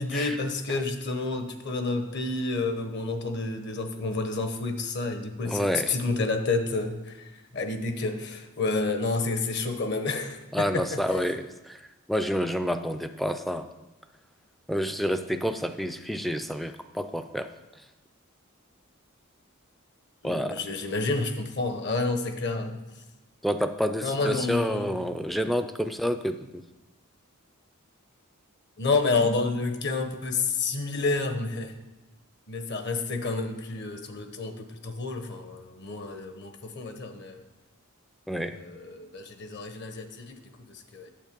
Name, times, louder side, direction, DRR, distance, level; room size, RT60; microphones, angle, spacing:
voice 1, 0.0-11.0 20.2-22.8 24.0-25.0 28.8-31.7 32.5-37.4 38.4-40.4 40.7-41.1, left 3 dB, 55° left, 7 dB, 1.0 m, -29 dB
voice 2, 5.5-5.9 10.5-11.8 12.1-13.7 14.7-17.5 20.2-20.6 23.4-26.6 38.3-38.6, equal, ahead, 8 dB, 0.3 m, -29 dB
9.0 x 7.1 x 5.2 m, 1.1 s
head